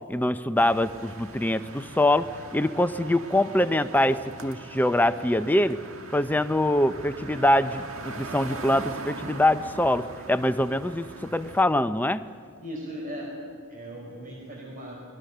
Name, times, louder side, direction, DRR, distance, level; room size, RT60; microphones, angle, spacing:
voice 1, 0.1-5.8 6.1-12.2, left 1 dB, 10° left, 11 dB, 0.5 m, -24 dB
sound 1, 0.6-11.6, right 3 dB, 80° right, 1.6 m, -41 dB
voice 2, 12.6-13.3 13.7-15.0, equal, 40° right, -2 dB, 4.5 m, -38 dB
27.5 x 21.5 x 6.7 m, 2.2 s
head